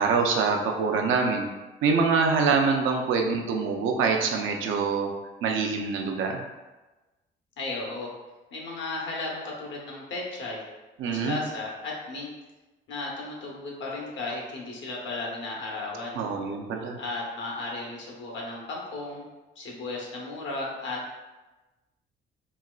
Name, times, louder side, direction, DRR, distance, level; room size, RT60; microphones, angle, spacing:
voice 1, 0.0-1.5 1.8-5.1 5.4-6.4 11.0-11.4 16.1-17.0, right 5 dB, 80° right, 2 dB, 0.5 m, -25 dB
voice 2, 7.6-8.1 8.5-10.6 11.0-12.3 12.9-16.2 17.0-19.2 19.6-21.0, left 2 dB, 70° left, -2 dB, 0.9 m, -35 dB
4.0 x 2.2 x 2.4 m, 1.1 s
cardioid pair, 90°, 20 cm